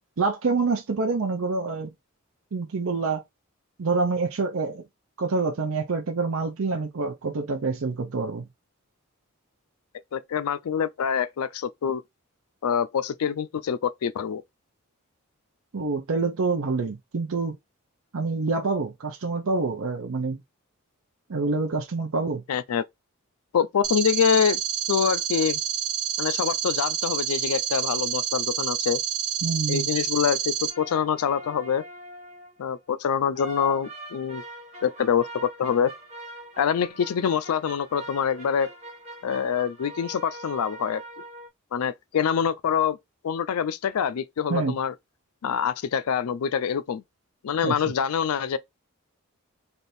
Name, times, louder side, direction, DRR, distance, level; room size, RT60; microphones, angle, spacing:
voice 1, 0.2-1.9 2.5-3.2 3.8-4.8 5.2-8.4 15.7-17.6 18.1-20.4 21.3-22.4 29.4-29.9 44.5-44.8 47.6-47.7, right 4 dB, 70° right, 0.6 m, -26 dB
voice 2, 10.1-12.0 12.6-14.4 22.5-22.8 23.5-24.6 24.9-25.6 26.2-29.0 29.7-31.8 32.6-34.4 34.8-35.9 36.6-38.7 39.2-41.0 41.7-43.0 43.2-44.9 45.4-47.0 47.4-48.6, left 7 dB, 85° left, 0.4 m, -25 dB
sound 1, 23.8-30.7, right 10 dB, 85° right, 0.9 m, -28 dB
sound 2, 30.6-32.6 33.3-41.5, right 1 dB, 30° right, 1.0 m, -42 dB
3.4 x 2.6 x 4.2 m
head